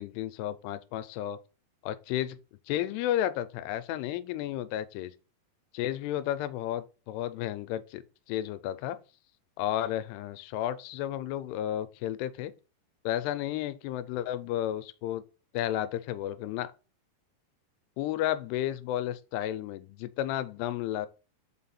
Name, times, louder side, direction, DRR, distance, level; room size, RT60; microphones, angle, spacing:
voice 1, 0.0-1.4 1.8-2.4 2.7-5.1 5.7-8.0 8.3-9.0 9.6-12.5 13.1-15.2 15.5-16.7 18.0-21.1, left 12 dB, 90° left, 2.7 m, -32 dB
5.7 x 4.8 x 4.2 m
omnidirectional pair, 4.7 m